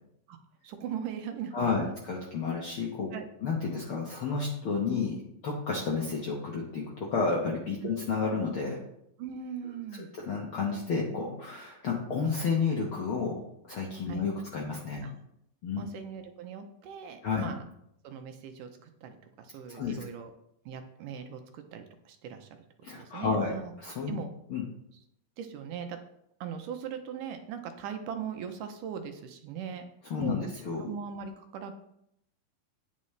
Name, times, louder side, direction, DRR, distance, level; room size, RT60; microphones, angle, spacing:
voice 1, 0.6-1.9 3.1-3.2 7.8-7.9 9.2-10.1 14.1-14.2 15.0-15.1 15.8-17.6 18.0-20.3 20.7-22.6 22.9-23.7 24.1-24.3 25.4-26.0 26.4-29.8 30.2-30.5 30.8-31.7, right 7 dB, 75° right, 6 dB, 2.1 m, -40 dB
voice 2, 1.5-3.1 3.4-5.2 5.4-8.8 10.0-13.3 13.7-15.0 15.6-15.8 17.2-17.5 19.7-20.0 22.8-24.2 24.5-24.6 30.1-30.9, left 4 dB, 85° left, -2 dB, 1.1 m, -31 dB
9.5 x 9.3 x 3.3 m, 0.75 s
omnidirectional pair, 4.3 m